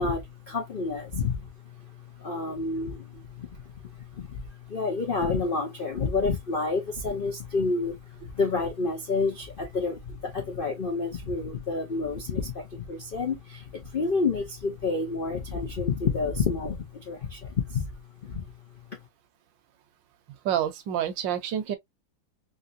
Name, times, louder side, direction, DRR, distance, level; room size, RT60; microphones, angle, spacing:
voice 1, 0.0-17.9 18.2-18.4, left 4 dB, 90° left, 0.4 m, -29 dB
voice 2, 20.4-21.8, right 10 dB, 70° right, 1.4 m, -28 dB
3.9 x 2.9 x 2.4 m
omnidirectional pair, 2.1 m